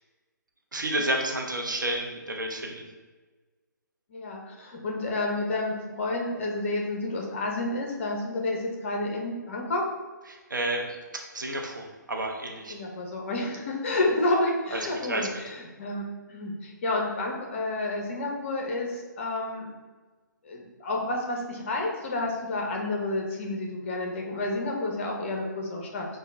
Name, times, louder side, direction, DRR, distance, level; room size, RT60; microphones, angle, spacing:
voice 1, 0.7-2.8 10.3-12.7 14.7-15.4, right 1 dB, 75° right, 1 dB, 0.6 m, -31 dB
voice 2, 4.1-9.8 12.7-16.0 16.3-19.7 20.4-26.1, left 2 dB, 40° left, 0 dB, 0.6 m, -30 dB
5.3 x 2.2 x 2.5 m, 1.3 s
figure-of-eight pair, 135°, 10 cm